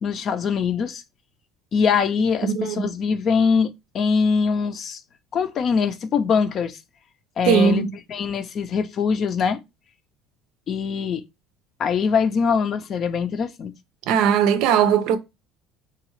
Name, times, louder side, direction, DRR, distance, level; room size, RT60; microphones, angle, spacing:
voice 1, 0.0-1.0 1.7-3.7 3.9-5.0 5.3-6.8 7.4-9.6 10.7-11.2 11.8-13.7, left 6 dB, 40° left, 0.5 m, -22 dB
voice 2, 2.4-2.9 7.5-7.9 14.1-15.2, right 8 dB, 65° right, 0.6 m, -19 dB
3.7 x 2.3 x 3.0 m
cardioid pair, 135°, 0 cm